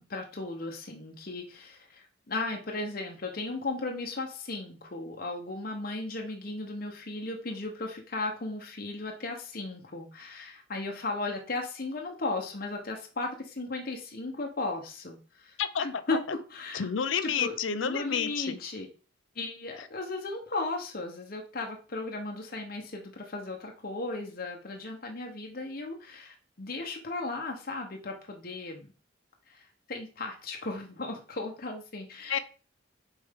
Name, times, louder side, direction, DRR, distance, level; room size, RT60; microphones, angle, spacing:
voice 1, 0.0-16.9 17.2-17.6 17.8-18.9 19.3-28.9 29.5-32.4, left 2 dB, 50° left, 2 dB, 0.9 m, -36 dB
voice 2, 16.7-18.6 32.3-32.4, left 7 dB, 80° left, 13 dB, 0.6 m, -29 dB
6.5 x 4.7 x 3.6 m, 0.36 s
head